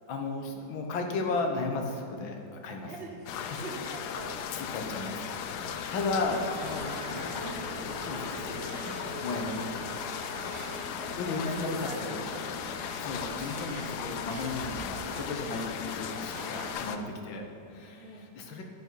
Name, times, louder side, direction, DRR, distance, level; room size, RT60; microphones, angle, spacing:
voice 1, 0.1-2.9 3.3-3.7 4.5-10.0 11.2-12.2 13.0-18.6, left 3 dB, 85° left, 3 dB, 1.8 m, -35 dB
voice 2, 2.9-4.4 5.6-5.8 10.5-12.6 13.9-14.3 16.9-17.2 17.5-18.4, right 2 dB, 60° right, 2 dB, 0.6 m, -44 dB
sound 1, 3.3-17.0, left 8 dB, 70° left, 1.0 m, -37 dB
Bangkok Restuarant Dishes Distant Road Noise, 6.1-16.7, right 2 dB, 40° right, 1.3 m, -43 dB
11.0 x 8.1 x 4.6 m, 2.5 s
omnidirectional pair, 2.1 m